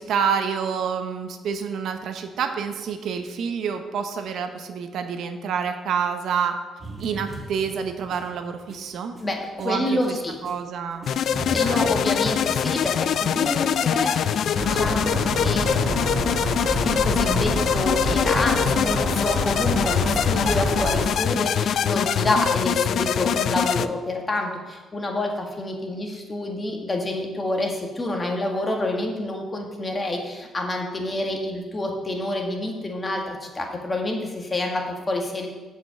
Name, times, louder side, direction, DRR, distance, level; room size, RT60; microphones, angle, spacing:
voice 1, 0.0-6.6 7.0-9.2 9.6-11.1 11.4-12.0, right 6 dB, 75° right, 7 dB, 0.8 m, -28 dB
sound 1, 6.8-10.6 10.9-12.8, right 1 dB, 20° right, 1.6 m, -39 dB
voice 2, 9.2-10.4 11.5-16.5 16.8-35.5, left 1 dB, 25° left, 1 dB, 1.8 m, -28 dB
sound 2, 11.1-23.9, left 8 dB, 70° left, 0.3 m, -23 dB
sound 3, 14.6-21.1, right 2 dB, 50° right, 1.9 m, -28 dB
7.7 x 5.3 x 7.5 m, 1.2 s
cardioid pair, 90°, 0 cm